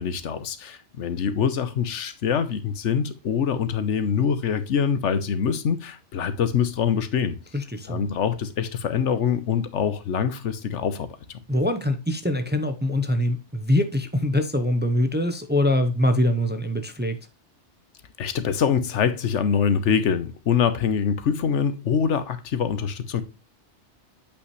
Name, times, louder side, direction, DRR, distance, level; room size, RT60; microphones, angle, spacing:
voice 1, 0.0-7.4 7.9-11.4 18.2-23.2, left 7 dB, 85° left, 1.2 m, -24 dB
voice 2, 7.5-8.0 11.5-17.2, left 1 dB, 10° right, 0.6 m, -23 dB
8.6 x 5.7 x 3.1 m
omnidirectional pair, 1.2 m